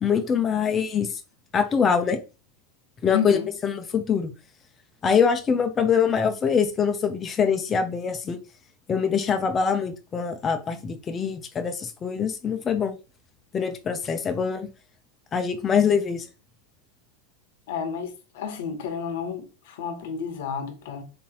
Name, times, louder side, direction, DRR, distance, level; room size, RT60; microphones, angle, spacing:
voice 1, 0.0-1.2 1.5-2.2 3.0-3.4 3.6-4.3 5.0-8.4 8.9-12.9 13.5-14.7 15.3-16.3, left 6 dB, 25° left, 0.6 m, -24 dB
voice 2, 3.1-3.5 17.7-21.0, left 7 dB, 70° left, 0.9 m, -31 dB
3.9 x 2.8 x 2.8 m
hypercardioid pair, 110°, 0 cm